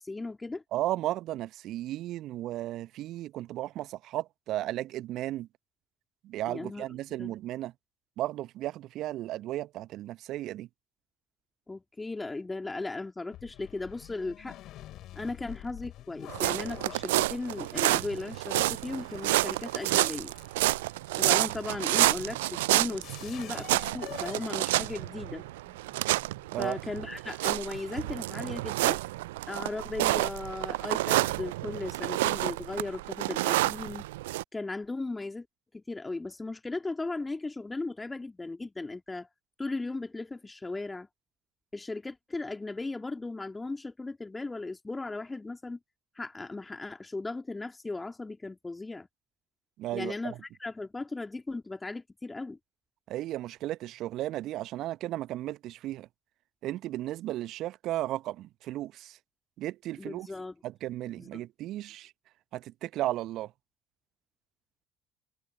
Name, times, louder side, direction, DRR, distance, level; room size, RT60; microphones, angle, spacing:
voice 1, 0.0-0.6 6.5-6.8 7.2-7.3 11.7-14.6 15.1-20.3 21.2-25.4 26.6-29.0 29.5-34.1 34.5-35.5 35.7-39.3 39.6-41.1 41.7-45.8 46.1-49.1 49.9-52.6 60.0-60.6 61.2-61.5, left 3 dB, 15° left, 2.8 m, -37 dB
voice 2, 0.7-5.5 6.2-7.7 8.2-10.7 26.5-26.8 49.8-50.4 53.1-56.1 56.6-59.2 59.6-60.3 60.6-62.1 62.5-63.5, right 14 dB, 55° right, 1.0 m, -34 dB
sound 1, 13.3-25.3, left 14 dB, 55° left, 6.9 m, -49 dB
sound 2, 16.3-34.4, right 18 dB, 75° right, 0.5 m, -29 dB
sound 3, 21.8-27.0, right 5 dB, 35° right, 6.7 m, -59 dB
figure-of-eight pair, 55°, 0 cm